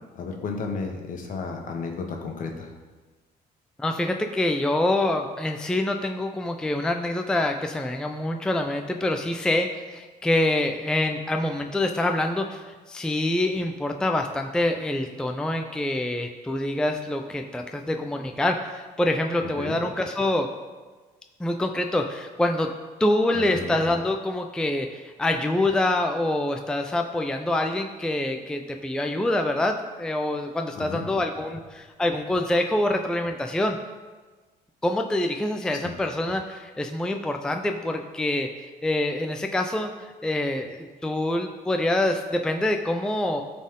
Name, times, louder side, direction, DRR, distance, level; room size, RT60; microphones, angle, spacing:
voice 1, 0.1-2.7 19.6-19.8 23.3-23.8 30.8-31.1 35.8-35.9, left 4 dB, 50° left, 3 dB, 1.3 m, -33 dB
voice 2, 3.8-20.5 21.4-22.7 23.0-33.8 34.8-43.4, left 1 dB, 5° left, 4 dB, 0.4 m, -26 dB
12.5 x 4.3 x 3.8 m, 1.3 s
cardioid pair, 110°, 17 cm